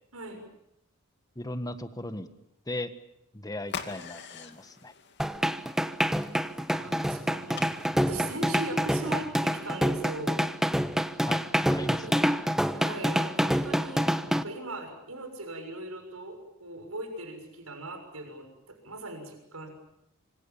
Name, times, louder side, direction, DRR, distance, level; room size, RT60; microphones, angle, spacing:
voice 1, 1.3-2.3 2.7-2.9 3.3-4.9 11.3-12.3, left 1 dB, 15° left, 10 dB, 1.5 m, -37 dB
sound 1, 3.6-8.8, left 6 dB, 55° left, 2.4 m, -45 dB
sound 2, 5.2-14.4, equal, ahead, 1.1 m, -27 dB
sound 3, 6.6-9.5, equal, 30° right, 5.9 m, -54 dB
voice 2, 6.7-10.4 11.9-12.1 12.7-19.7, right 2 dB, 85° right, 5 dB, 6.8 m, -39 dB
26.5 x 26.0 x 7.2 m, 0.82 s
head